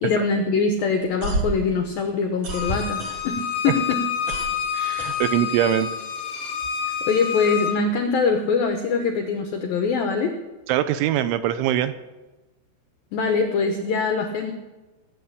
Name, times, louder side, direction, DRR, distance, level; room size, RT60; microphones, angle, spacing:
voice 1, 0.0-4.0 6.8-10.3 13.1-14.5, left 4 dB, 80° left, 5 dB, 2.1 m, -23 dB
sound 1, 1.0-3.6 3.9-5.8, right 1 dB, 60° right, 1.8 m, -30 dB
Bowed string instrument, 2.5-7.7, left 8 dB, 60° left, 3.3 m, -28 dB
voice 2, 4.7-5.9 10.7-11.9, right 11 dB, 80° right, 12 dB, 3.0 m, -22 dB
18.0 x 8.1 x 8.4 m, 1.1 s
omnidirectional pair, 5.7 m